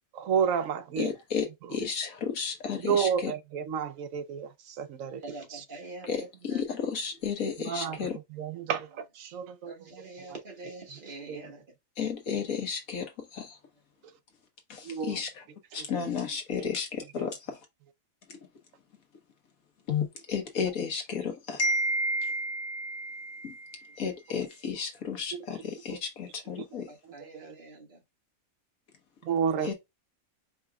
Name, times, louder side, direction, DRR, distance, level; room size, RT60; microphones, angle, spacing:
voice 1, 0.1-1.1 1.6-1.7 2.8-5.2 5.5-5.6 7.6-9.9 10.2-10.4 10.9-11.0 11.3-11.4 14.8-15.2 15.7-16.0 17.2-17.3 24.3-24.4 25.3-25.6 25.9-26.0 26.6-26.7 27.2-27.5 29.2-29.7, right 7 dB, 70° right, 1.0 m, -32 dB
voice 2, 1.0-3.3 6.1-6.2 6.4-8.1 12.0-13.6 14.7-15.3 15.7-17.4 19.9-26.9 29.6-29.7, left 4 dB, 80° left, 1.6 m, -32 dB
voice 3, 5.2-6.6 7.9-8.1 9.7-11.6 26.8-28.0, right 2 dB, 40° right, 1.5 m, -44 dB
5.0 x 3.1 x 2.3 m
omnidirectional pair, 1.4 m